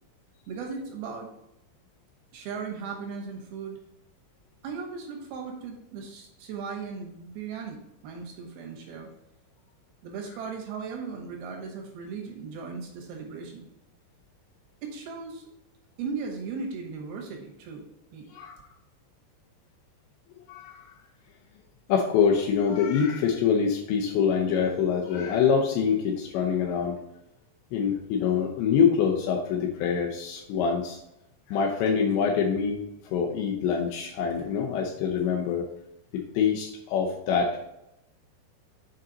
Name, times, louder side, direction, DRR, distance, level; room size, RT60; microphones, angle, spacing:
voice 1, 0.5-1.3 2.3-3.8 4.6-9.1 10.0-13.7 14.8-15.5 16.0-17.8 18.1-18.3, right 5 dB, 70° right, 1 dB, 2.4 m, -37 dB
voice 2, 20.5-20.9 21.9-27.0 27.7-31.0 31.5-35.7 36.1-37.6, left 6 dB, 80° left, 0 dB, 2.7 m, -25 dB
7.3 x 5.2 x 3.9 m, 0.85 s
omnidirectional pair, 5.6 m